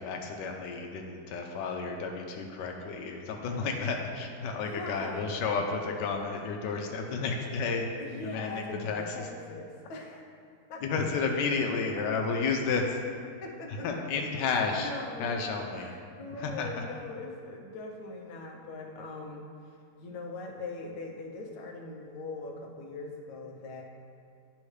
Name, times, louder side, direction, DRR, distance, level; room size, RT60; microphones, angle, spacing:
voice 1, 0.0-7.9 8.2-9.3 10.8-13.0 13.7-14.9 15.2-15.9 16.3-16.8, left 4 dB, 85° left, 2 dB, 1.2 m, -32 dB
voice 2, 4.6-5.8 8.0-10.3 10.7-10.8 13.4-13.9 14.4-15.4 15.8-19.4 20.0-23.8, left 3 dB, 65° left, 0 dB, 1.1 m, -41 dB
9.9 x 3.5 x 3.2 m, 2.2 s
omnidirectional pair, 1.8 m